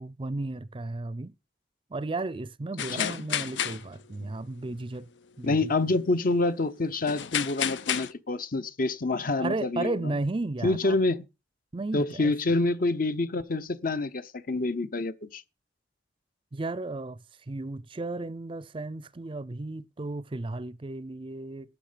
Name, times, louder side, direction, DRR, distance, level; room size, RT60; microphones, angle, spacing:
voice 1, 0.0-1.3 1.9-5.1 5.4-6.0 9.4-11.0 11.7-12.6 16.5-17.2 17.5-21.8, right 2 dB, 30° right, 0.5 m, -34 dB
sound 1, 2.8-4.3 4.7-4.8 7.1-8.1, left 9 dB, 80° left, 0.6 m, -31 dB
voice 2, 5.4-10.0 10.6-11.2 11.9-15.4, left 2 dB, 50° left, 0.8 m, -27 dB
12.0 x 8.7 x 5.1 m
head